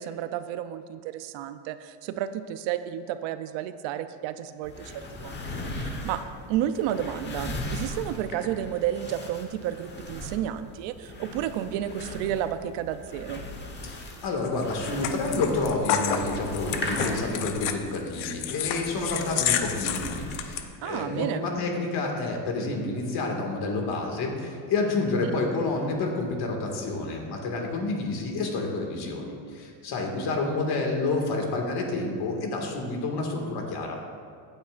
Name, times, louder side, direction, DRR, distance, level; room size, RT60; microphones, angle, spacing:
voice 1, 0.0-6.2 6.5-13.4 20.8-21.5, right 11 dB, 65° right, 11 dB, 0.7 m, -31 dB
sound 1, 4.6-20.6, left 1 dB, 20° left, 1.2 m, -38 dB
voice 2, 13.8-34.0, left 3 dB, 50° left, 1 dB, 2.1 m, -29 dB
sound 2, 14.4-20.6, left 9 dB, 75° left, 0.9 m, -30 dB
15.5 x 8.9 x 2.5 m, 2.2 s
cardioid pair, 135°, 47 cm